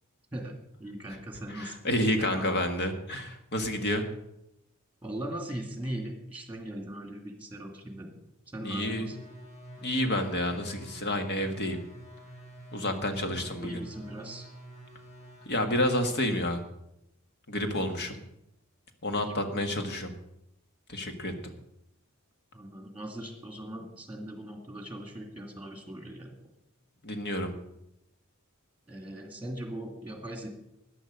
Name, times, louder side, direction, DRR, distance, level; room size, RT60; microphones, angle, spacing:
voice 1, 0.3-1.7 2.2-2.6 5.0-8.2 8.5-9.2 13.1-13.3 13.6-14.5 17.8-17.9 19.2-19.3 19.6-19.7 22.5-26.3 28.9-30.5, right 1 dB, 10° right, 3 dB, 2.3 m, -39 dB
voice 2, 1.5-4.0 8.6-9.1 9.8-11.8 12.7-13.8 15.4-16.6 17.5-18.2 19.0-20.1 20.9-21.5 27.0-27.5, left 1 dB, 50° left, 6 dB, 1.6 m, -29 dB
sound 1, 8.8-15.5, right 1 dB, 30° left, 5.0 m, -48 dB
13.5 x 10.0 x 5.2 m, 0.83 s
head